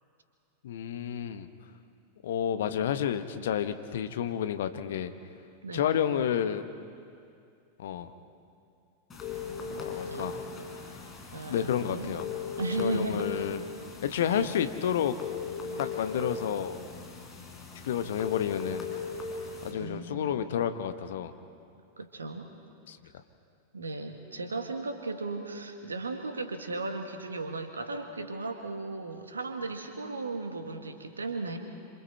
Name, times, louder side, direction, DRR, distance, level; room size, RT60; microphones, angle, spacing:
voice 1, 0.6-1.5 2.2-5.1 5.7-6.6 7.8-8.1 9.8-10.4 11.5-12.2 12.8-13.6 14.0-15.2 15.8-16.8 17.8-18.9 19.6-21.3 22.9-23.0, left 9 dB, 60° left, 10 dB, 1.0 m, -30 dB
voice 2, 5.6-6.0 10.1-10.3 11.3-12.1 12.6-13.4 14.3-14.5 19.7-20.2 22.0-22.5 23.7-31.6, right 3 dB, 75° right, 6 dB, 1.8 m, -36 dB
sound 1, 9.1-19.7, left 5 dB, 20° left, 4.3 m, -38 dB
27.0 x 26.5 x 4.4 m, 2.4 s
figure-of-eight pair, 90°, 0 cm